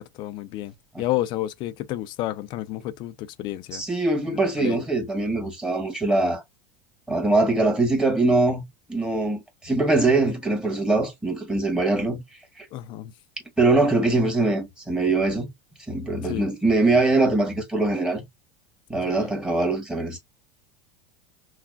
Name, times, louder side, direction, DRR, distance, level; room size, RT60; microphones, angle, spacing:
voice 1, 0.0-3.8 4.3-4.8 12.7-13.1 16.2-16.5 19.1-19.3, left 15 dB, 50° left, 0.5 m, -31 dB
voice 2, 3.7-6.4 7.1-8.6 8.9-12.2 13.6-15.5 15.9-18.2 18.9-20.2, right 2 dB, 10° right, 1.9 m, -22 dB
5.7 x 2.4 x 2.2 m
supercardioid pair, 105°, 10 cm